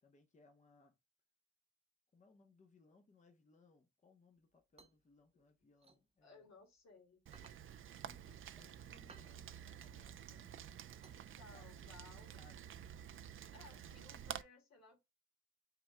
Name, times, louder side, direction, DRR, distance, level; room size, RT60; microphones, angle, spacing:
voice 1, 0.0-1.0 2.1-6.5 8.0-10.5 11.5-11.7 12.2-12.7 13.7-13.8, left 3 dB, 25° left, 0.9 m, -68 dB
sound 1, 4.4-6.8 7.2-11.8, right 4 dB, 20° right, 0.8 m, -65 dB
voice 2, 6.2-7.3 11.3-12.4 13.5-15.0, left 4 dB, 60° left, 2.0 m, -61 dB
Rain, 7.3-14.4, right 9 dB, 45° right, 0.5 m, -51 dB
5.7 x 3.5 x 2.2 m
cardioid pair, 90°, 30 cm